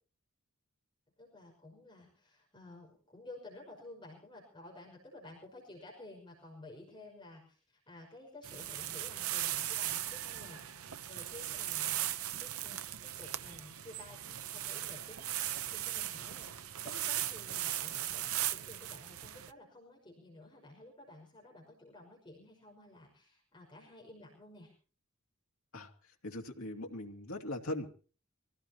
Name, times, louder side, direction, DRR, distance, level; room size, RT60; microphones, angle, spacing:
voice 1, 1.2-7.6 7.9-12.1 12.4-24.7, left 2 dB, 20° left, -2 dB, 5.7 m, -53 dB
sound 1, 8.4-19.5, right 12 dB, 80° right, 0.8 m, -38 dB
voice 2, 26.2-27.9, left 1 dB, 75° left, 1 dB, 2.5 m, -40 dB
25.0 x 17.0 x 2.9 m, 0.40 s
head